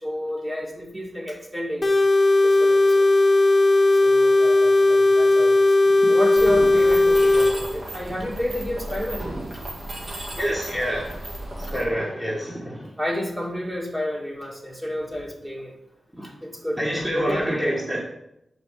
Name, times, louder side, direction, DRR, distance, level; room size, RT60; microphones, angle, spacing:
voice 1, 0.0-1.9 2.4-3.1 4.0-5.8 6.1-9.3 9.5-9.6 12.0-12.2 12.8-15.7 16.2-17.7, left 1 dB, 20° right, -2 dB, 2.2 m, -31 dB
sound 1, 1.8-7.5, left 2 dB, 35° left, 1.0 m, -17 dB
Mechanisms, 6.4-11.8, right 1 dB, 65° right, 2.3 m, -34 dB
voice 2, 10.4-11.3 11.6-12.9 16.2-16.3 16.8-18.0, equal, 5° right, -4 dB, 1.7 m, -27 dB
6.3 x 5.2 x 6.5 m, 0.81 s
cardioid pair, 60°, 0 cm